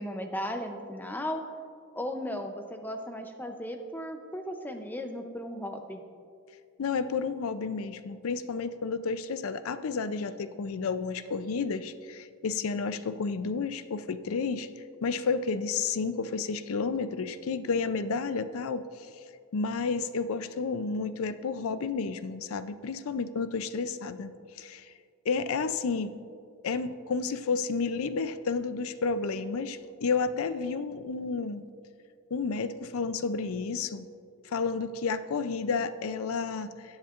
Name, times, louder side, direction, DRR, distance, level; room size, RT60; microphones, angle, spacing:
voice 1, 0.0-1.4 2.0-6.0, equal, 10° left, 5 dB, 0.6 m, -36 dB
voice 2, 6.8-14.7 15.0-18.8 19.5-24.3 24.6-24.9 25.3-26.1 26.6-31.6 32.3-34.1 34.4-37.0, left 4 dB, 65° left, 13 dB, 0.4 m, -31 dB
18.0 x 7.3 x 2.5 m, 2.3 s
head